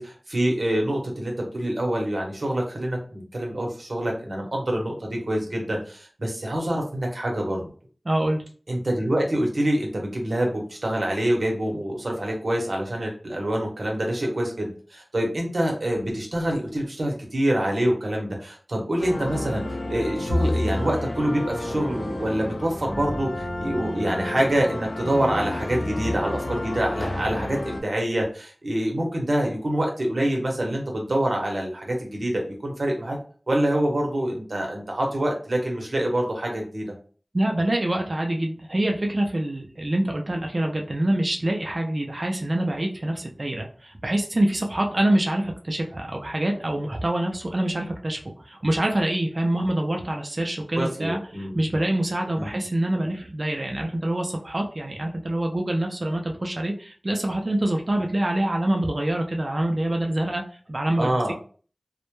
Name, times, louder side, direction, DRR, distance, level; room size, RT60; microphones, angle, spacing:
voice 1, 0.0-7.7 8.7-19.6 19.9-33.2 33.5-36.9 50.7-51.6 52.4-52.5 60.9-61.3, right 1 dB, 70° right, 0 dB, 0.8 m, -26 dB
voice 2, 8.1-8.4 37.3-51.2 51.5-60.4 60.7-61.3, right 1 dB, 50° right, 2 dB, 0.4 m, -25 dB
sound 1, 19.0-27.8, left 1 dB, 90° left, 0.4 m, -31 dB
Bowed string instrument, 20.3-23.8, left 1 dB, 55° left, 0.7 m, -31 dB
2.1 x 2.0 x 2.9 m, 0.41 s
wide cardioid pair, 45°, 0 cm